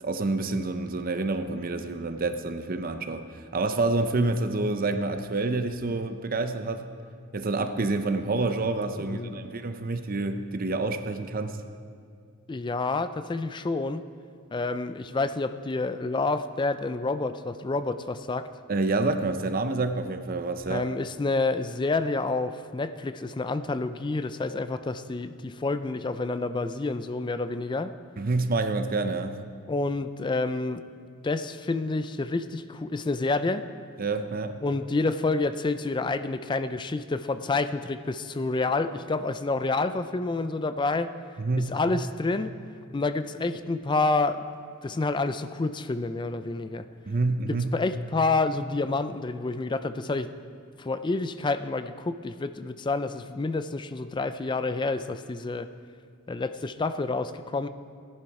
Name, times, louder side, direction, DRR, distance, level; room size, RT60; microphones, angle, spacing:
voice 1, 0.0-6.9 7.3-11.6 18.7-20.8 28.2-29.4 34.0-34.6 41.4-41.8 47.1-47.7, right 3 dB, 45° right, 8 dB, 0.6 m, -28 dB
voice 2, 9.1-9.4 12.5-14.0 14.5-18.5 20.7-27.9 29.7-30.8 31.2-33.6 34.6-41.1 41.6-42.5 42.9-44.4 44.8-46.8 47.5-50.3 50.8-55.7 56.3-57.7, left 3 dB, 25° left, 11 dB, 0.4 m, -28 dB
17.0 x 11.0 x 4.8 m, 2.2 s
head